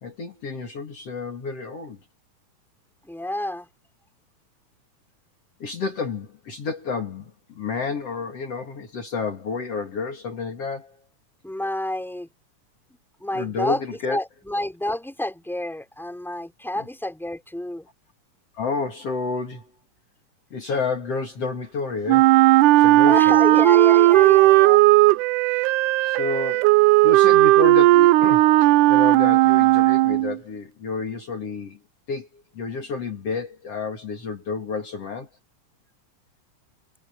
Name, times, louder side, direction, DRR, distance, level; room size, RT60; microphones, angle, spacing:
voice 1, 0.0-2.0 5.6-11.0 13.3-14.2 16.8-16.9 18.6-19.7 20.5-22.3 22.7-23.4 26.0-26.7 27.0-31.8 32.1-35.3, left 4 dB, 50° left, 3.4 m, -30 dB
voice 2, 3.0-3.7 11.4-12.3 13.2-13.8 14.1-17.9 23.1-24.8, left 1 dB, ahead, 5.4 m, -29 dB
Wind instrument woodwind instrument, 22.1-30.4, right 17 dB, 85° right, 2.1 m, -15 dB
omnidirectional pair, 3.6 m